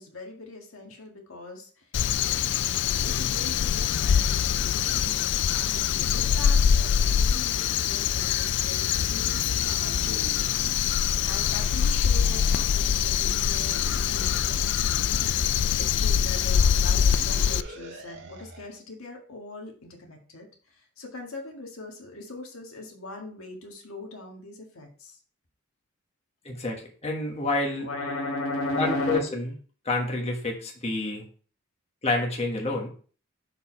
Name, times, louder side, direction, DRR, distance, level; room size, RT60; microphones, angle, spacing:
voice 1, 0.0-1.9 3.0-10.5 11.2-14.9 15.8-25.2 27.7-29.2, left 2 dB, 80° left, 1 dB, 1.8 m, -38 dB
Crow, 1.9-17.6, left 8 dB, 60° left, 0.3 m, -24 dB
sound 1, 9.8-11.1 11.4-13.1 13.5-18.7, right 2 dB, 60° right, 1.4 m, -43 dB
voice 2, 26.4-27.9 28.7-29.4 29.8-31.2 32.0-32.9, left 2 dB, 30° left, -1 dB, 1.5 m, -28 dB
6.7 x 4.7 x 4.4 m, 0.41 s
head